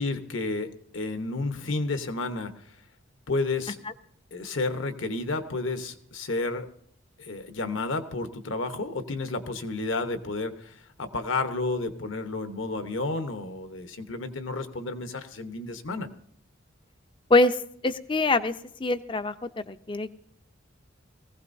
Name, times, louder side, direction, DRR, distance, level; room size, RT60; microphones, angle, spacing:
voice 1, 0.0-2.5 3.3-3.8 4.3-6.7 7.2-16.1, left 3 dB, 70° left, 8 dB, 1.0 m, -31 dB
voice 2, 17.8-18.5 18.8-19.3 19.7-20.1, left 2 dB, 25° left, 12 dB, 0.5 m, -23 dB
20.0 x 15.5 x 2.7 m, 0.68 s
head